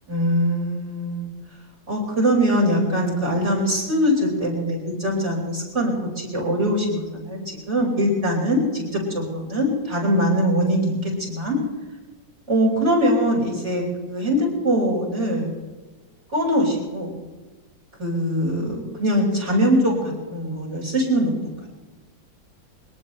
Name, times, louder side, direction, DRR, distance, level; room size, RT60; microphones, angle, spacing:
voice 1, 0.1-1.3 1.9-7.4 7.7-10.9 11.2-11.6 12.5-15.5 16.3-17.2 18.0-21.3, equal, 35° right, -5 dB, 5.8 m, -22 dB
23.5 x 18.5 x 3.3 m, 1.2 s
omnidirectional pair, 2.1 m